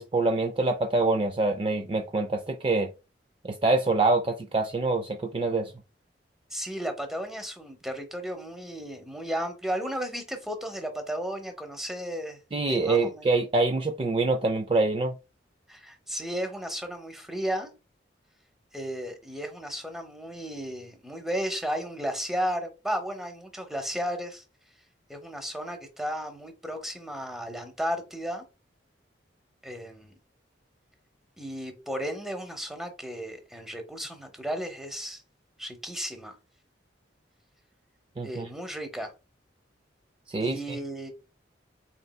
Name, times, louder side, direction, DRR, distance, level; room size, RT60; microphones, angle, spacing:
voice 1, 0.0-2.9 3.4-5.7 12.5-15.1 38.2-38.5 40.3-40.6, right 3 dB, 30° right, 5 dB, 0.3 m, -25 dB
voice 2, 6.5-12.4 12.7-13.4 15.7-17.7 18.7-24.4 25.1-28.5 29.6-30.1 31.4-35.2 35.6-36.3 38.2-39.1 40.4-41.1, equal, ahead, 6 dB, 0.8 m, -34 dB
4.2 x 3.8 x 2.2 m, 0.29 s
head